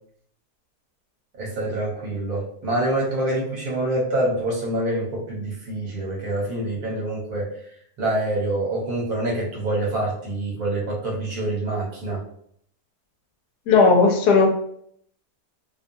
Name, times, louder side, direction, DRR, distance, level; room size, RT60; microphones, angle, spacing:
voice 1, 1.4-7.5 8.0-12.2, right 1 dB, 65° right, -3 dB, 1.3 m, -26 dB
voice 2, 13.7-14.5, left 4 dB, 80° left, 2 dB, 1.1 m, -15 dB
2.8 x 2.2 x 2.6 m, 0.65 s
omnidirectional pair, 1.8 m